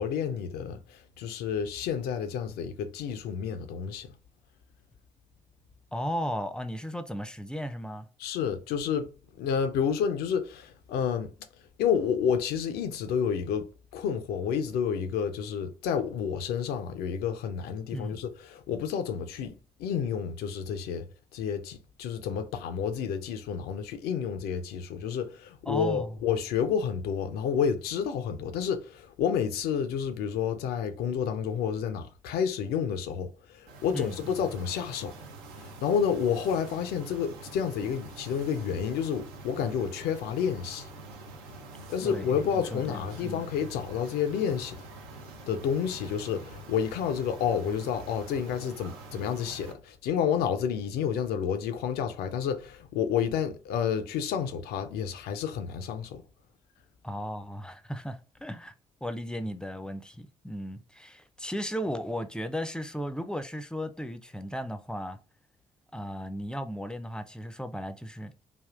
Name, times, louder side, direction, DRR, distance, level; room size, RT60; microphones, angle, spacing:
voice 1, 0.0-4.2 8.2-11.3 11.8-21.1 21.3-35.2 35.6-40.9 41.9-44.8 45.5-56.2, left 7 dB, 65° left, 0.5 m, -30 dB
voice 2, 5.9-8.1 17.9-18.2 25.7-26.1 33.9-34.3 42.0-43.4 57.0-58.7 59.0-65.2 65.9-68.3, equal, 5° left, 0.4 m, -35 dB
sound 1, 33.7-49.7, right 2 dB, 70° right, 0.6 m, -46 dB
3.4 x 2.4 x 2.4 m
figure-of-eight pair, 45°, 18 cm